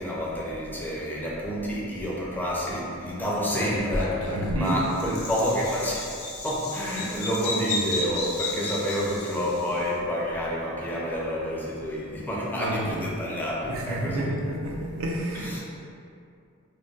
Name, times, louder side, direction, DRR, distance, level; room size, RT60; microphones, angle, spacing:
voice 1, 0.0-6.2 6.4-14.4 15.3-15.6, equal, 10° left, -5 dB, 0.4 m, -29 dB
Bird vocalization bird call bird song, 3.5-9.7, left 2 dB, 75° left, 0.5 m, -32 dB
voice 2, 4.3-4.8 12.5-13.1 13.6-15.6, right 1 dB, 65° right, -1 dB, 0.5 m, -30 dB
2.3 x 2.1 x 3.8 m, 2.5 s
head